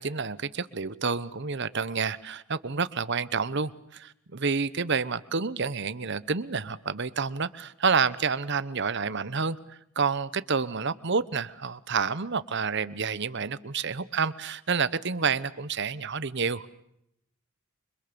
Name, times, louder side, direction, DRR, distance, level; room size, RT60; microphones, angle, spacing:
voice 1, 0.0-16.7, right 5 dB, 55° right, 1.0 m, -29 dB
29.0 x 26.0 x 6.9 m
head